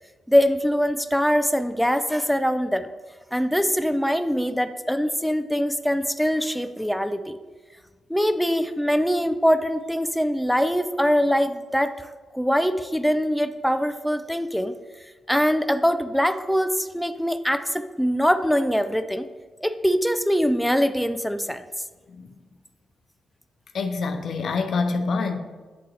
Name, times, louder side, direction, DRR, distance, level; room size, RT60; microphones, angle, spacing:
voice 1, 0.3-2.9 3.3-7.4 8.1-12.1 12.3-14.7 15.3-19.3 19.6-21.6, equal, ahead, 9 dB, 0.4 m, -23 dB
voice 2, 23.7-25.4, left 4 dB, 65° left, 7 dB, 0.5 m, -26 dB
9.2 x 3.7 x 2.8 m, 1.4 s
supercardioid pair, 45°, 0 cm